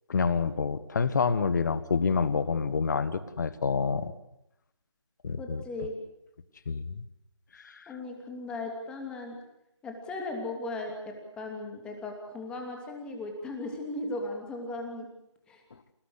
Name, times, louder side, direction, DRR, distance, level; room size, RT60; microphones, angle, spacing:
voice 1, 0.1-4.1 5.2-5.6 6.7-7.0 7.6-7.8, left 5 dB, 40° left, 14 dB, 1.5 m, -28 dB
voice 2, 5.4-5.9 7.9-9.4 9.8-15.1 15.5-15.6, left 2 dB, 5° left, 2 dB, 2.9 m, -37 dB
28.0 x 18.5 x 8.1 m, 0.84 s
figure-of-eight pair, 160°, 16 cm